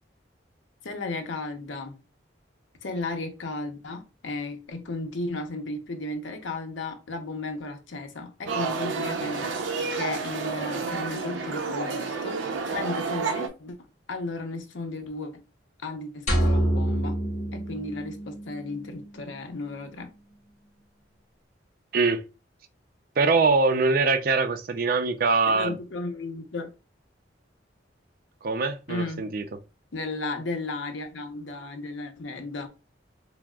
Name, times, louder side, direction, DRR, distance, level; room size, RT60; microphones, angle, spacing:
voice 1, 0.8-2.0 2.8-9.7 10.0-12.4 12.7-13.8 14.1-15.4 15.8-17.2 17.5-20.1 25.5-26.7 28.9-29.3 29.9-32.7, left 2 dB, 90° left, 0.7 m, -34 dB
sound 1, 8.5-13.5, right 4 dB, 90° right, 0.6 m, -30 dB
sound 2, 16.3-18.6, right 1 dB, 40° left, 1.4 m, -25 dB
voice 2, 23.2-25.8 28.4-29.4, right 4 dB, 50° right, 0.4 m, -23 dB
5.9 x 2.0 x 2.3 m
head